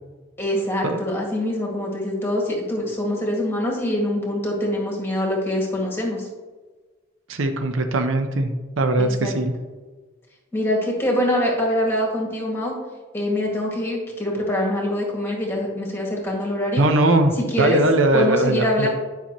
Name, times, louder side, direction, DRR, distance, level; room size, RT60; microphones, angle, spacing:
voice 1, 0.4-6.3 9.0-9.3 10.5-12.7 13.1-16.9 17.4-17.8 18.1-18.9, left 1 dB, 10° left, -2 dB, 1.9 m, -24 dB
voice 2, 7.3-9.5 16.8-18.9, right 2 dB, 70° right, 7 dB, 0.7 m, -20 dB
9.9 x 5.7 x 2.9 m, 1.3 s
head